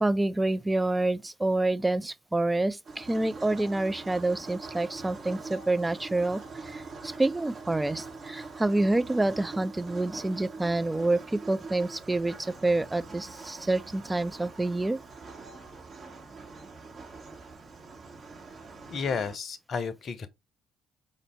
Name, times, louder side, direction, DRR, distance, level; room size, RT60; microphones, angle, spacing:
voice 1, 0.0-15.0, right 2 dB, 15° right, 0.4 m, -28 dB
sound 1, 2.8-19.4, right 4 dB, 40° right, 1.2 m, -43 dB
voice 2, 18.9-20.3, left 5 dB, 45° left, 0.6 m, -32 dB
5.1 x 2.6 x 3.1 m
figure-of-eight pair, 50°, 0 cm